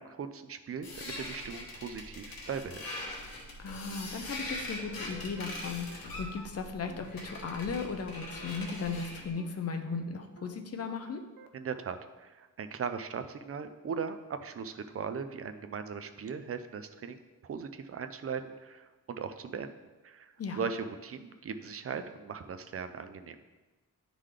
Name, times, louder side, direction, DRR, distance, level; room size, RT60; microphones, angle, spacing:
voice 1, 0.0-2.8 11.5-19.7 20.0-23.4, right 6 dB, 45° right, 9 dB, 0.4 m, -39 dB
sound 1, 0.8-9.3, left 2 dB, 90° left, 1.3 m, -42 dB
sound 2, 3.5-3.6 3.9-4.0 4.4-4.5 4.9-5.0 5.4-5.5 5.9-6.0 6.4-6.5 6.9-7.0 7.4-7.5 7.9-8.0 8.4-8.5 8.9-9.0 9.4-9.5 9.9-10.0 10.4-10.5 10.9-11.0 11.4-11.5, right 7 dB, 80° right, 0.6 m, -53 dB
voice 2, 3.6-11.2 20.4-20.6, left 5 dB, 45° left, 5 dB, 0.6 m, -36 dB
10.0 x 3.8 x 3.3 m, 1.2 s
wide cardioid pair, 175°, 35 cm